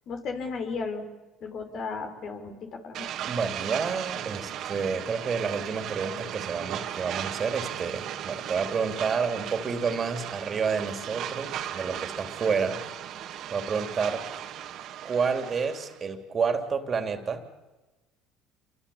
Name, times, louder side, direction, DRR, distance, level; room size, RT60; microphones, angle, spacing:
voice 1, 0.1-1.0 1.4-3.1, left 4 dB, 55° left, 5 dB, 5.1 m, -34 dB
sound 1, 2.9-16.0, right 10 dB, 65° right, 2.6 m, -36 dB
voice 2, 3.3-12.8 13.5-14.2 15.0-17.4, right 5 dB, 40° right, 7 dB, 3.3 m, -29 dB
28.0 x 24.0 x 8.7 m, 1.1 s
supercardioid pair, 80°, 0 cm